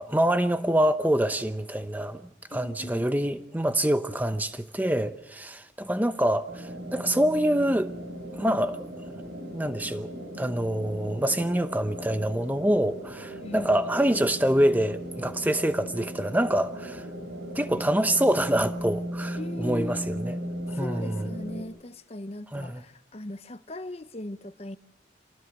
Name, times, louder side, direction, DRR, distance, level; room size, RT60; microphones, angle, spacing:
voice 1, 0.0-7.9 8.3-8.9 9.5-10.1 10.4-17.1 17.5-20.4 20.7-21.3 22.5-22.8, right 1 dB, 10° right, 0.8 m, -26 dB
voice 2, 2.5-3.1 13.4-13.8 19.4-20.1 20.7-24.8, left 1 dB, 35° left, 0.8 m, -39 dB
sound 1, 6.5-21.6, equal, 65° right, 3.7 m, -37 dB
27.5 x 19.5 x 6.5 m
head